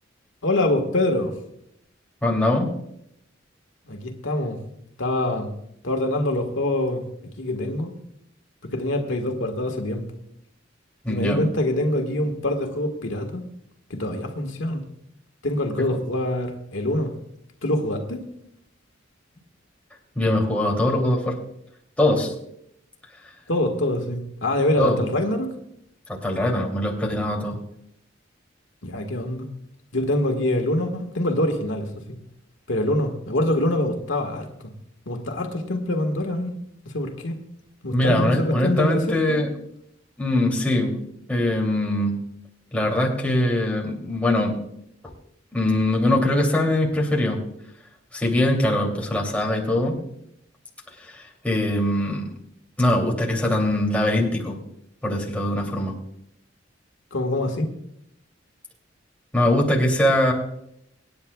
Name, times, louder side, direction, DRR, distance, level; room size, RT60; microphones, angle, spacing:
voice 1, 0.4-1.3 3.9-4.6 5.0-5.5 5.8-7.0 7.4-7.9 8.7-10.0 11.1-13.4 13.9-14.8 15.4-17.1 17.6-18.2 23.5-25.5 28.8-29.5 29.9-32.2 32.7-34.5 35.1-36.5 36.9-37.4 37.8-39.4 57.1-57.7, left 1 dB, 85° left, 4 dB, 1.7 m, -25 dB
voice 2, 2.2-2.7 11.0-11.5 15.9-16.0 20.1-21.4 22.0-22.3 24.8-25.0 26.2-27.6 37.9-39.5 40.2-41.0 41.3-42.2 42.7-44.6 45.5-47.4 48.1-50.0 51.0-52.3 52.8-54.6 55.0-55.9 59.3-60.3, left 1 dB, 10° left, -2 dB, 2.8 m, -22 dB
25.5 x 9.6 x 2.3 m, 0.75 s
head